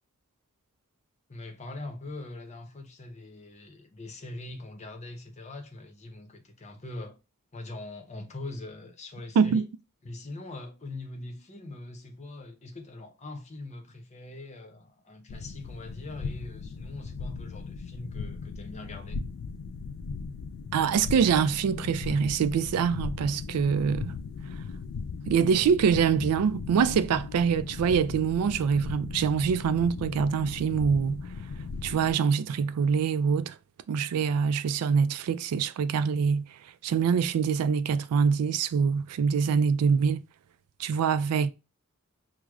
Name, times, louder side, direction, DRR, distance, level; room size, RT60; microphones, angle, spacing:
voice 1, 1.3-7.1 7.5-9.6 10.0-19.2, left 2 dB, 30° left, 0.7 m, -42 dB
sound 1, 15.3-32.1, left 4 dB, 65° left, 0.3 m, -38 dB
voice 2, 20.7-24.1 25.3-31.2 31.8-33.5 33.9-36.5 36.8-40.2 40.8-41.5, right 6 dB, 80° right, 0.3 m, -24 dB
6.1 x 2.1 x 2.3 m
head